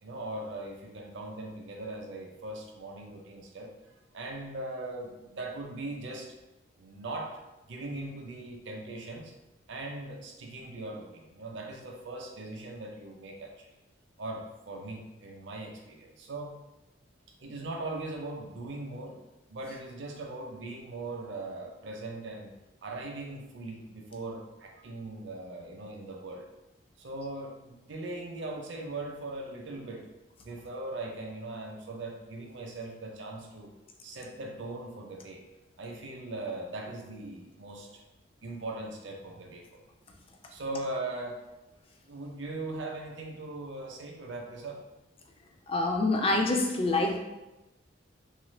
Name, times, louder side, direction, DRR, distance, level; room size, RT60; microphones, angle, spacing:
voice 1, 0.0-3.7 4.1-6.3 6.8-7.4 7.7-9.3 9.7-13.7 14.2-16.6 17.4-19.2 19.5-22.5 22.8-26.5 27.0-30.1 30.4-33.7 34.0-35.4 35.8-37.9 38.4-39.8 40.5-41.4 42.1-44.8, right 2 dB, 65° right, 1 dB, 0.6 m, -40 dB
voice 2, 45.7-47.2, left 2 dB, 30° left, 3 dB, 0.3 m, -26 dB
3.3 x 2.4 x 3.1 m, 1.0 s
head